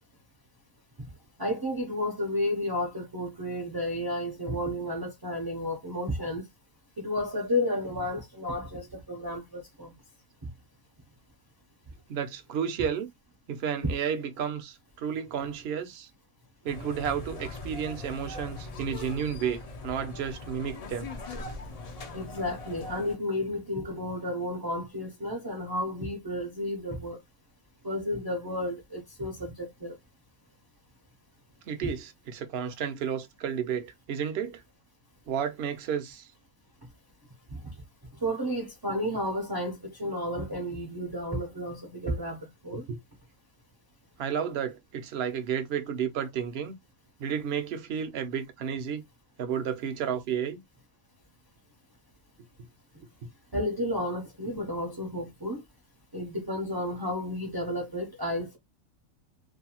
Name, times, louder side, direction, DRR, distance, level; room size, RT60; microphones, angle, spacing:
voice 1, 1.4-6.4 7.0-9.9 13.8-13.9 22.1-27.2 27.8-29.9 37.5-37.6 38.2-42.9 53.5-55.6 56.1-58.6, left 1 dB, 25° right, 0.5 m, -32 dB
voice 2, 12.1-13.1 13.5-16.1 16.6-21.1 31.7-34.6 35.3-36.3 42.9-43.0 44.2-46.8 47.2-49.0 49.4-50.6 53.2-53.3, right 8 dB, 60° right, 0.8 m, -32 dB
sound 1, 16.7-23.2, left 2 dB, 60° left, 0.4 m, -41 dB
2.6 x 2.2 x 2.9 m
omnidirectional pair, 1.4 m